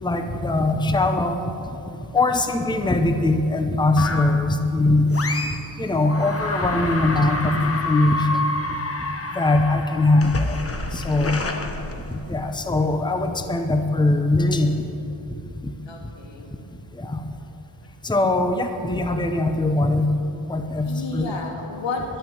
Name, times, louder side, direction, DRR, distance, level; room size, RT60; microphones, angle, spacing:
voice 1, 0.0-1.4 2.1-5.3 5.8-8.3 9.3-10.6 10.9-11.5 12.1-14.8 15.3-15.7 17.0-17.2 18.0-20.1 20.4-21.4, left 2 dB, 10° left, 6 dB, 0.7 m, -21 dB
voice 2, 2.2-2.5 11.2-11.7 15.9-16.6 20.9-22.2, left 3 dB, 80° left, 1 dB, 2.2 m, -33 dB
sound 1, 4.0-4.5 5.1-5.7 6.0-12.5, left 2 dB, 30° left, 1.0 m, -29 dB
12.0 x 9.1 x 9.3 m, 2.9 s
wide cardioid pair, 170°, 44 cm